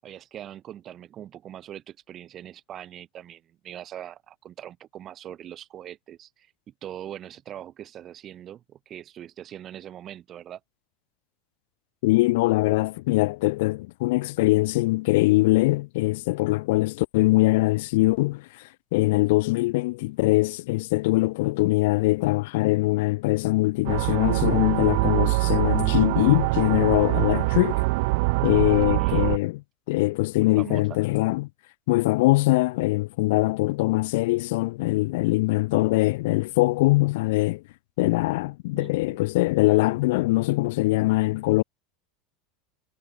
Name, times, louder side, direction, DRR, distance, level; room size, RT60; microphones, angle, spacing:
voice 1, 0.0-10.6 28.9-29.4 30.3-31.0 38.7-39.2, right 11 dB, 30° right, 6.5 m, -42 dB
voice 2, 12.0-27.8 28.4-29.6 29.9-31.5 31.9-37.6 38.0-41.6, left 21 dB, 75° left, 0.8 m, -22 dB
sound 1, 23.8-29.4, right 26 dB, 65° right, 4.4 m, -24 dB
supercardioid pair, 145°, 0 cm